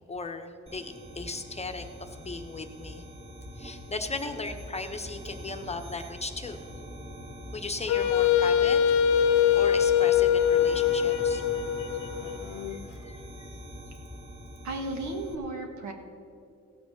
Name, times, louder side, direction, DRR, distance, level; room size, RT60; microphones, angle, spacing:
voice 1, 0.1-3.0 3.6-6.6 7.5-8.8 9.5-11.4 12.5-13.5, left 3 dB, 20° left, 5 dB, 1.0 m, -37 dB
sound 1, 0.7-15.3, equal, 20° right, 2.2 m, -43 dB
Wind instrument woodwind instrument, 7.9-12.8, left 9 dB, 85° left, 0.8 m, -23 dB
voice 2, 14.6-15.9, right 2 dB, 70° right, 4 dB, 1.8 m, -34 dB
16.0 x 6.1 x 6.4 m, 2.6 s
cardioid pair, 90°, 30 cm